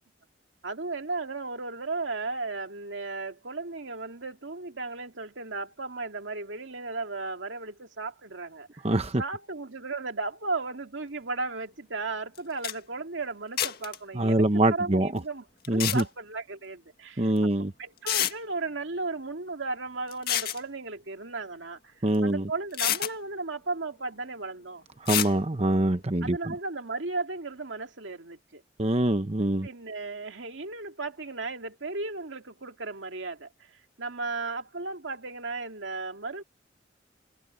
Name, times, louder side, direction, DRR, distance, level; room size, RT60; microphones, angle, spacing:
voice 1, 0.6-8.9 9.2-17.3 17.6-24.8 26.2-28.6 29.6-36.4, right 3 dB, 85° right, 2.2 m, -35 dB
voice 2, 8.8-9.2 14.1-15.1 15.7-16.0 17.2-17.7 22.0-22.4 25.0-26.4 28.8-29.7, right 1 dB, 35° right, 1.0 m, -24 dB
sound 1, 12.3-12.4 12.6-12.7 13.6-14.0 15.6-16.0 17.4-17.5 18.1-18.3 20.1-20.6 22.1-22.2 22.7-23.1 25.1-25.3, left 11 dB, 55° left, 1.9 m, -27 dB
head